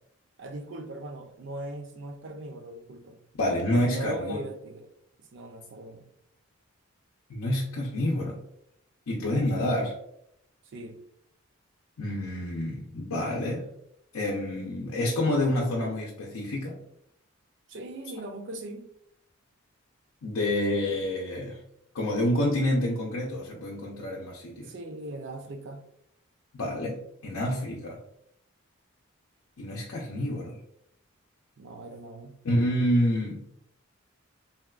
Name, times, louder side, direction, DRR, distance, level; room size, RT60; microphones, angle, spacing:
voice 1, 0.4-3.2 3.7-4.9 5.2-6.1 10.6-11.0 17.7-18.9 24.6-25.8 31.6-32.4, right 1 dB, 60° right, 5 dB, 0.4 m, -40 dB
voice 2, 3.4-4.4 7.3-8.4 9.1-9.9 12.0-13.6 14.1-16.8 20.2-21.6 21.9-24.7 26.5-28.0 29.6-30.6 32.4-33.5, left 1 dB, 90° left, -3 dB, 0.5 m, -28 dB
3.5 x 2.2 x 2.3 m, 0.74 s
head